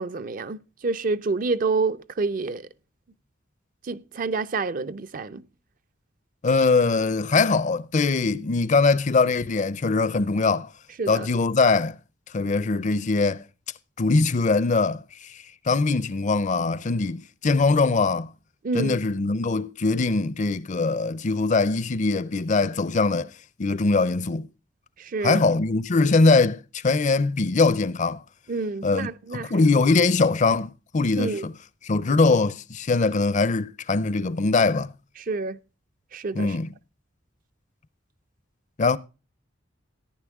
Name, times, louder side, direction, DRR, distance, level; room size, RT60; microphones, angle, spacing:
voice 1, 0.0-2.7 3.9-5.4 11.0-11.3 18.6-19.0 25.0-25.4 28.5-29.5 31.2-31.4 35.3-35.6 36.1-36.5, right 3 dB, 45° right, 0.5 m, -28 dB
voice 2, 6.4-10.7 11.1-12.0 12.3-13.4 14.0-18.3 18.7-23.3 23.6-24.5 25.2-28.2 28.8-31.5 31.8-34.9 36.3-36.7 38.8-39.0, left 3 dB, 40° left, 0.5 m, -22 dB
14.5 x 9.7 x 3.5 m
head